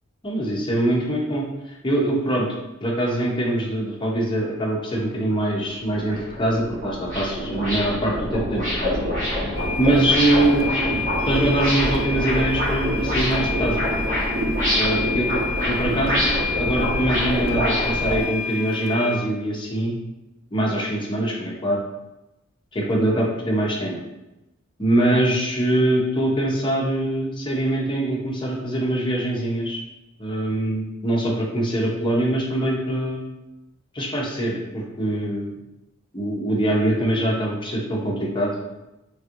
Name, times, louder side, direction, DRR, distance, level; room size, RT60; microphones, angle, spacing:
voice 1, 0.2-1.5 1.8-2.5 2.8-9.0 9.5-13.8 14.7-20.0 20.5-21.8 22.7-24.0 24.8-29.8 30.2-33.2 33.9-35.5 36.1-38.5, right 1 dB, 25° left, -2 dB, 0.6 m, -23 dB
sound 1, 5.3-5.4 5.8-18.2, equal, 40° right, 1.4 m, -25 dB
sound 2, 9.6-19.2, left 5 dB, 80° left, 0.4 m, -30 dB
3.5 x 3.1 x 2.5 m, 0.97 s
head